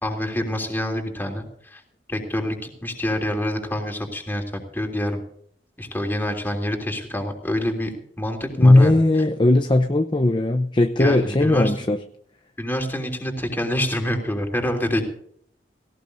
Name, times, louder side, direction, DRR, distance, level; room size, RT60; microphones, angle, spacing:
voice 1, 0.0-1.8 2.1-5.2 5.8-7.9 8.2-9.0 11.0-11.7 12.6-15.0, left 1 dB, 10° left, 2 dB, 3.2 m, -26 dB
voice 2, 8.6-12.0, left 2 dB, 30° left, 7 dB, 0.7 m, -17 dB
18.0 x 18.0 x 2.7 m, 0.65 s
head